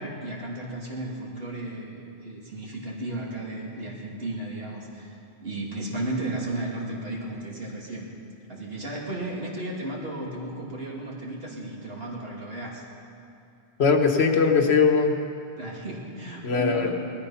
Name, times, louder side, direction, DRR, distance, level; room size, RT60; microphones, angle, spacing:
voice 1, 0.0-5.1 5.4-8.1 8.5-12.8 15.5-16.9, right 2 dB, 60° right, -3 dB, 2.8 m, -34 dB
voice 2, 13.8-15.2 16.4-16.9, left 5 dB, 70° left, 4 dB, 1.4 m, -20 dB
19.0 x 13.5 x 5.7 m, 2.6 s
omnidirectional pair, 1.2 m